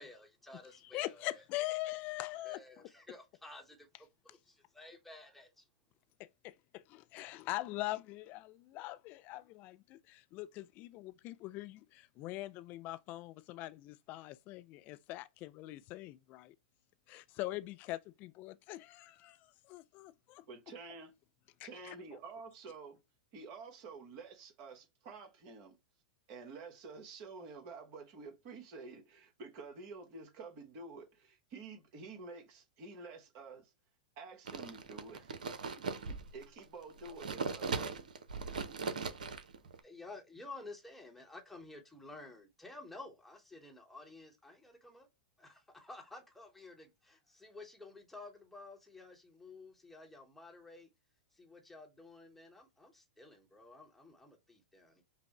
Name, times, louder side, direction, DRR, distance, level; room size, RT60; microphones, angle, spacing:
voice 1, 0.0-1.4 2.4-3.9 4.2-5.7 39.8-45.1 45.4-50.9 51.3-55.0, left 2 dB, 5° left, 1.0 m, -52 dB
voice 2, 0.8-2.9 6.2-16.5 17.1-20.4 21.6-22.0, left 18 dB, 40° left, 0.3 m, -43 dB
voice 3, 20.5-21.1 21.6-23.0 23.3-25.8 26.3-33.7 34.2-35.4 35.7-37.9, right 4 dB, 50° right, 1.1 m, -50 dB
sound 1, 34.5-36.6 37.0-39.8, right 5 dB, 75° right, 0.7 m, -39 dB
5.4 x 2.1 x 2.8 m
hypercardioid pair, 100°, 4 cm